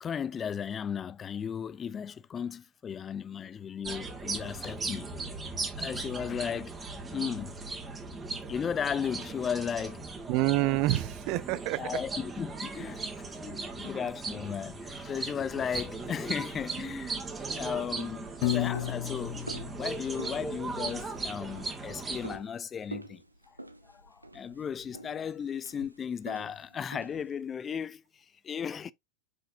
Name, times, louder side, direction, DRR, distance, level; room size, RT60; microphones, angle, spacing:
voice 1, 0.0-5.1 5.8-6.8 7.1-7.8 8.5-10.0 11.8-17.2 17.5-23.6 23.8-28.9, left 7 dB, 20° left, 0.4 m, -35 dB
sound 1, 3.8-22.4, right 3 dB, 15° right, 1.9 m, -38 dB
voice 2, 10.3-12.0, right 18 dB, 40° right, 0.6 m, -27 dB
sound 2, 17.7-27.4, right 2 dB, 85° right, 0.7 m, -48 dB
Piano, 18.4-20.6, left 15 dB, 45° left, 0.9 m, -33 dB
6.2 x 5.6 x 2.8 m
figure-of-eight pair, 90°, 0 cm